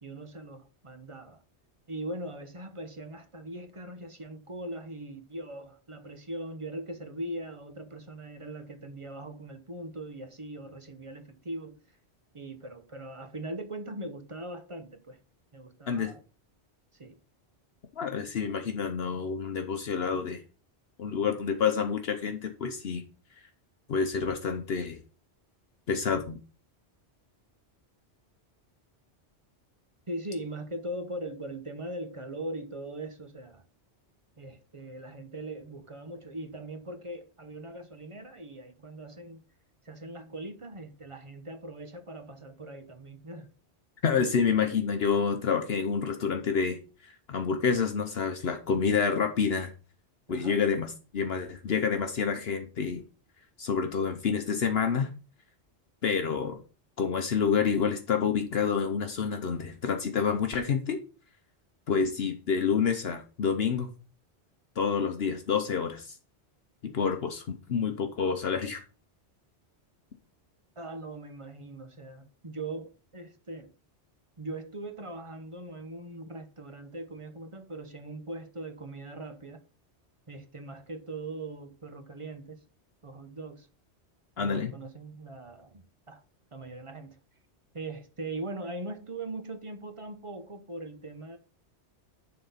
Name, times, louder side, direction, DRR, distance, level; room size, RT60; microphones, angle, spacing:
voice 1, 0.0-1.4 1.9-11.8 12.3-15.2 15.5-16.2 16.9-17.2 30.1-33.6 34.4-39.4 39.8-43.5 50.3-50.6 70.8-73.7 74.4-79.6 80.3-82.6 83.0-83.7 84.4-86.2 86.5-87.2 87.7-91.4, right 1 dB, 30° right, 0.9 m, -40 dB
voice 2, 18.0-20.4 21.0-23.0 23.9-25.0 25.9-26.4 44.0-49.7 50.3-53.0 53.6-55.1 56.0-56.6 57.0-61.0 61.9-63.9 64.8-66.2 66.8-68.8 84.4-84.7, left 6 dB, 65° left, 1.0 m, -28 dB
10.0 x 3.9 x 5.6 m
omnidirectional pair, 1.1 m